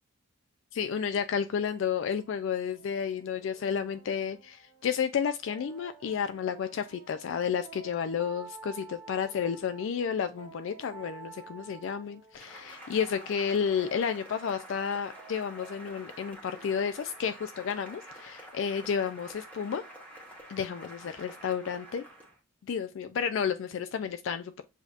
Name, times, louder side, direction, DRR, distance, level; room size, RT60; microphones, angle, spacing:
voice 1, 0.7-19.8 20.5-22.0 22.6-24.6, left 7 dB, 65° left, 0.3 m, -31 dB
sound 1, 1.1-18.5, right 4 dB, 20° right, 1.7 m, -53 dB
Cheering / Applause, 12.3-22.4, right 1 dB, 5° left, 1.1 m, -48 dB
6.9 x 2.8 x 2.4 m
head